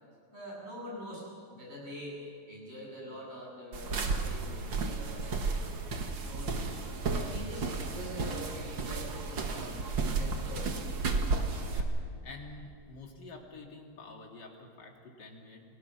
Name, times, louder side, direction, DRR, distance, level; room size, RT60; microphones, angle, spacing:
voice 1, 0.3-5.7 6.2-6.8 7.1-9.7 10.2-10.9, equal, 30° right, -4 dB, 8.4 m, -44 dB
sound 1, 3.7-11.8, right 4 dB, 60° right, 2.3 m, -33 dB
voice 2, 11.6-15.6, left 3 dB, 55° left, 1 dB, 3.2 m, -48 dB
29.5 x 19.5 x 6.1 m, 2.4 s
omnidirectional pair, 2.3 m